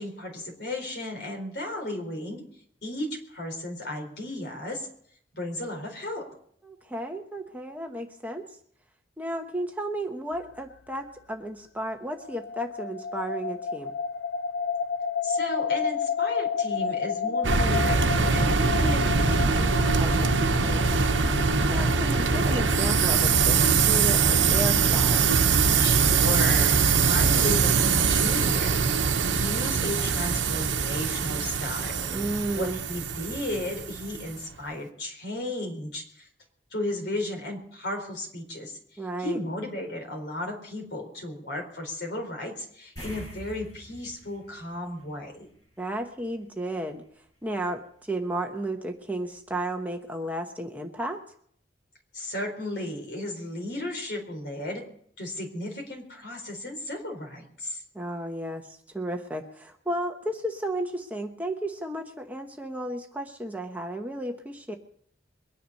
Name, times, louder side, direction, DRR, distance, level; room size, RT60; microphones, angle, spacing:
voice 1, 0.0-2.4 2.8-4.9 5.3-6.2 15.2-19.7 25.7-32.1 32.5-36.3 36.7-38.8 39.2-45.5 52.1-54.8 55.2-57.8, left 1 dB, 65° left, 2 dB, 4.3 m, -34 dB
voice 2, 6.6-8.5 9.2-13.9 19.9-20.3 20.6-21.2 21.7-25.3 32.1-32.8 39.0-39.4 45.8-47.0 47.4-51.2 57.9-64.8, right 1 dB, 10° right, 3 dB, 1.0 m, -33 dB
sound 1, 12.2-29.0, left 5 dB, 80° left, 0.5 m, -32 dB
sound 2, 17.4-34.3, right 5 dB, 85° right, 0.9 m, -23 dB
sound 3, 43.0-45.7 46.0-46.2 49.1-49.2 49.5-49.6, right 1 dB, 20° left, 7.9 m, -44 dB
22.5 x 10.0 x 5.4 m, 0.64 s
head